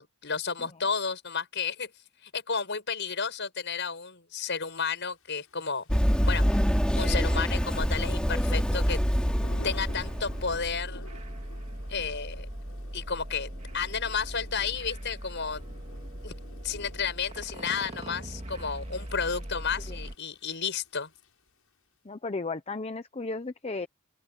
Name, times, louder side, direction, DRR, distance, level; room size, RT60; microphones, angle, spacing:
voice 1, 0.0-1.9 2.2-5.8 6.3-6.4 7.0-9.0 9.6-11.0 11.9-12.5 12.9-15.6 16.2-16.3 16.6-21.1, left 5 dB, 55° left, 7.2 m, -32 dB
Thunder / Rain, 5.1-21.7, left 2 dB, 85° left, 7.4 m, -53 dB
Run, 5.9-10.7, equal, 5° left, 2.5 m, -26 dB
sound 1, 9.1-20.1, equal, 30° right, 2.2 m, -40 dB
voice 2, 22.0-23.9, left 3 dB, 30° left, 0.7 m, -34 dB
open air
head